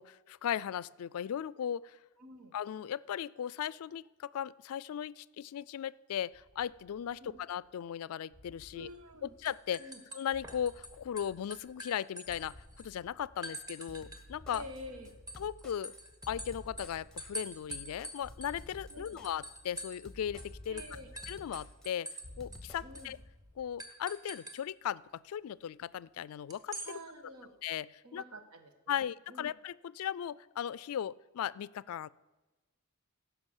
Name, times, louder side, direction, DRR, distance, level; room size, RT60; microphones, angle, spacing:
voice 1, 0.0-2.0 2.5-8.9 9.2-9.8 10.1-14.6 15.4-15.9 16.3-20.8 21.3-22.1 22.4-23.2 23.6-27.0 27.6-28.2 28.9-32.1, left 9 dB, 75° left, 19 dB, 0.3 m, -37 dB
voice 2, 2.2-2.6 7.2-7.4 8.7-9.3 9.8-10.0 14.5-15.1 18.9-19.2 20.7-21.1 22.8-23.1 26.8-27.5 28.0-29.5, equal, 85° right, 7 dB, 1.4 m, -48 dB
sound 1, 6.3-7.7 8.3-9.9 10.3-11.9 12.3-13.8 14.3-15.9 16.3-17.9 18.2-19.8 20.2-21.9 22.2-23.8, left 1 dB, 55° right, 3.2 m, -55 dB
sound 2, 8.9-9.2 9.4-10.9 11.2-12.9 13.4-14.2 14.5-20.1 20.4-20.5 20.8-22.3 22.5-22.6 22.9-23.1 23.8-24.6 26.5-26.9, equal, 15° right, 1.2 m, -45 dB
sound 3, 13.9-23.1, left 1 dB, 5° left, 0.8 m, -54 dB
16.0 x 5.9 x 7.2 m, 1.1 s
head